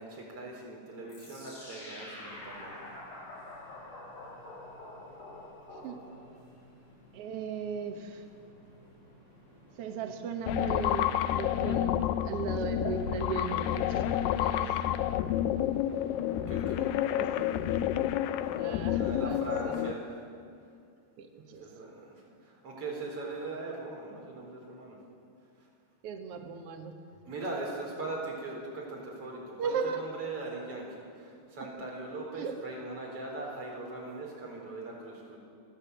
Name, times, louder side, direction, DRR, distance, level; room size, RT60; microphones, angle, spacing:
voice 1, 0.0-3.0 16.5-17.5 18.8-20.2 21.6-25.0 27.2-35.4, right 2 dB, 35° right, -2 dB, 5.0 m, -40 dB
sound 1, 1.1-6.4, left 1 dB, 60° left, 7.7 m, -46 dB
sound 2, 2.3-19.2, equal, 25° left, 8.3 m, -56 dB
voice 2, 7.1-8.2 9.8-14.8 17.1-17.3 18.6-19.8 21.2-21.6 26.0-26.9 29.6-30.0 32.4-32.6, right 5 dB, 85° right, 4 dB, 1.3 m, -37 dB
sound 3, 10.5-19.9, left 11 dB, 85° left, 2.0 m, -29 dB
29.5 x 11.5 x 8.2 m, 2.3 s
omnidirectional pair, 4.7 m